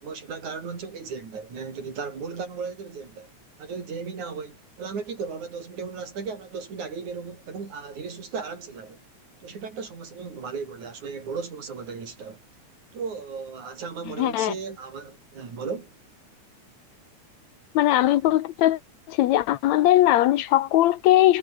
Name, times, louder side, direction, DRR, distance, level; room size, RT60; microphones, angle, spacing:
voice 1, 0.0-3.3 3.6-9.0 9.4-12.4 12.9-15.9, right 5 dB, 75° right, 5.7 m, -36 dB
voice 2, 14.1-14.5 17.7-18.8 19.1-21.4, left 14 dB, 75° left, 2.0 m, -20 dB
omnidirectional pair, 3.4 m